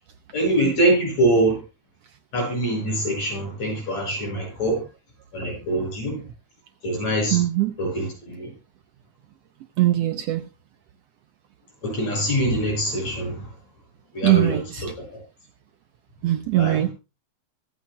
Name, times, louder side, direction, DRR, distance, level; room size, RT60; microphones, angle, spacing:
voice 1, 0.3-1.6 2.3-4.8 5.3-6.2 6.8-7.4 7.8-8.5 11.8-13.5 14.1-15.2 16.6-16.9, right 1 dB, 65° left, 0 dB, 7.6 m, -24 dB
voice 2, 7.3-7.7 9.8-10.4 14.2-14.8 16.2-16.9, right 15 dB, 75° right, 9 dB, 1.5 m, -21 dB
24.5 x 8.6 x 2.2 m, 0.27 s
omnidirectional pair, 3.4 m